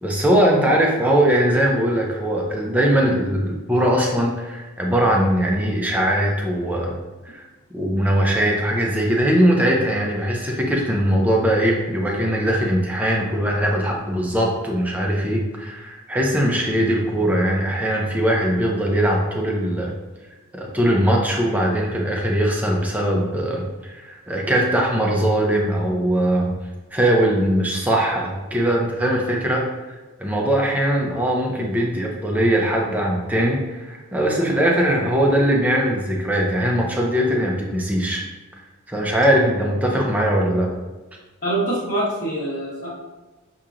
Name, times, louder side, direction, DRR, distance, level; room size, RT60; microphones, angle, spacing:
voice 1, 0.0-6.9 7.2-7.4 7.7-19.9 20.5-26.5 26.9-38.2 38.9-40.7, right 1 dB, 5° right, -2 dB, 0.6 m, -20 dB
voice 2, 41.4-42.9, right 1 dB, 35° left, -9 dB, 1.4 m, -24 dB
7.0 x 2.9 x 2.5 m, 1.2 s
head